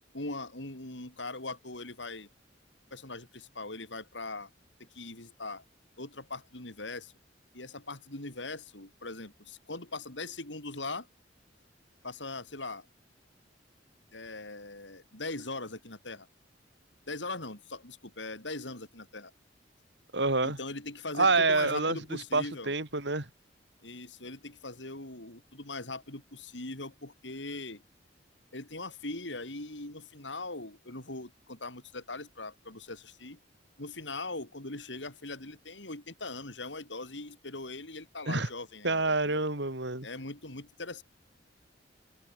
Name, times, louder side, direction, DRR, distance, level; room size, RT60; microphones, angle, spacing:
voice 1, 0.1-2.3 2.9-4.5 4.8-5.6 6.0-7.1 7.5-11.1 12.0-12.9 14.1-16.3 17.1-19.3 20.4-22.7 23.8-27.8 28.5-33.4 33.8-39.4 40.0-41.0, left 2 dB, 75° left, 5.2 m, -40 dB
voice 2, 20.1-20.6 21.2-22.0 22.3-23.3 38.3-38.5 38.8-40.1, right 3 dB, 70° right, 4.1 m, -27 dB
head